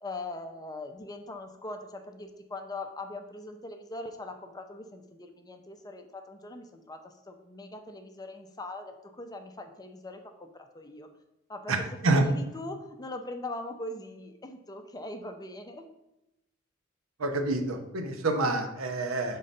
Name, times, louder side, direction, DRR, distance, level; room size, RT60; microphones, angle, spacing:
voice 1, 0.0-11.1 11.5-15.9, left 2 dB, 20° left, 5 dB, 0.5 m, -41 dB
voice 2, 17.2-19.4, right 2 dB, 80° right, 6 dB, 0.8 m, -27 dB
5.6 x 3.7 x 5.3 m, 0.90 s
head